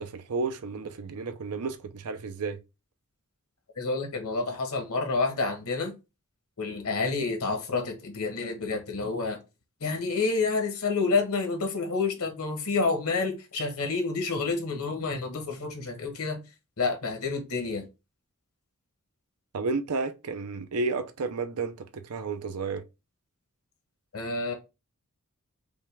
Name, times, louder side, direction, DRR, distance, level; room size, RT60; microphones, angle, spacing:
voice 1, 0.0-2.6 19.5-22.8, right 4 dB, 85° right, 0.6 m, -32 dB
voice 2, 3.8-5.9 6.6-9.4 9.8-16.4 16.8-17.9 24.1-24.5, left 4 dB, 70° left, 1.3 m, -29 dB
5.3 x 2.3 x 3.3 m
head